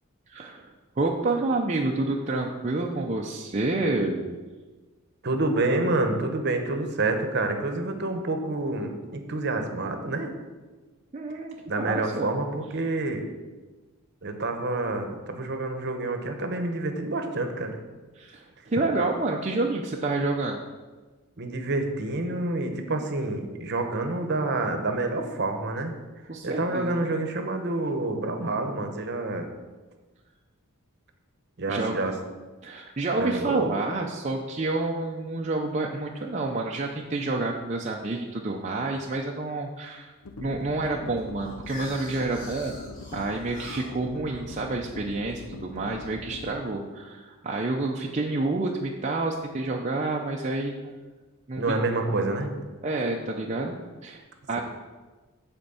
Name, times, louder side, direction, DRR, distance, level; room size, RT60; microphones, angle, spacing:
voice 1, 0.3-0.7 1.0-4.3 11.1-12.3 18.2-20.6 26.3-27.1 31.7-32.0 32.6-40.1 40.4-42.8 43.1-50.9 51.5-51.8 52.8-54.6, right 2 dB, 30° right, -1 dB, 0.6 m, -29 dB
voice 2, 5.2-10.3 11.7-13.2 14.2-17.8 21.4-26.0 26.4-29.5 31.6-32.1 33.2-33.8 51.6-52.5, right 2 dB, 50° right, 5 dB, 0.9 m, -28 dB
sound 1, 40.2-46.6, left 3 dB, 80° left, 0.6 m, -42 dB
sound 2, 41.2-46.0, left 2 dB, 40° left, 1.9 m, -45 dB
7.9 x 4.4 x 6.9 m, 1.3 s
head